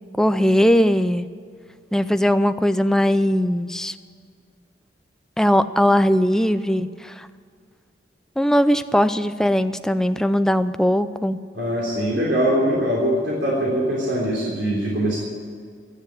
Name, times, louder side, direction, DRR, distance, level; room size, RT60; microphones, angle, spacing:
voice 1, 0.2-1.3 1.9-3.9 5.4-7.3 8.4-11.4, equal, 5° left, 11 dB, 0.5 m, -19 dB
voice 2, 11.5-15.2, equal, 85° right, -4 dB, 3.3 m, -22 dB
13.5 x 9.4 x 9.7 m, 2.2 s
head